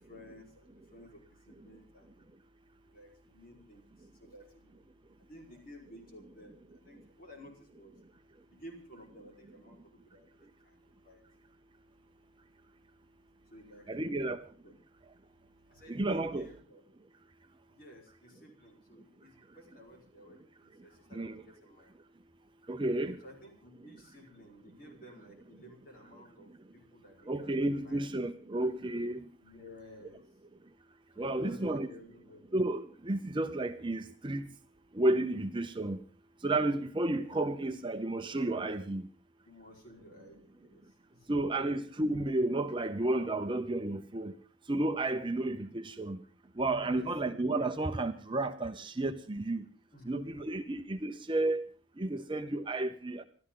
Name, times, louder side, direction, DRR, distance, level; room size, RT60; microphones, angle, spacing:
voice 1, 0.0-2.3 2.8-11.2 11.7-14.3 14.6-16.8 17.7-22.0 23.2-28.0 28.4-28.7 29.4-30.2 31.1-32.4 39.4-41.3 46.8-47.1 49.9-50.5, equal, 45° left, 4.8 m, -55 dB
voice 2, 13.9-14.4 15.9-16.5 21.1-21.4 22.7-23.2 27.3-29.2 31.2-31.9 32.5-34.5 34.9-36.0 36.4-39.0 41.3-44.4 44.7-46.2 46.6-49.6 50.1-51.6 52.0-53.2, right 2 dB, 25° right, 0.7 m, -32 dB
27.5 x 12.5 x 3.9 m
head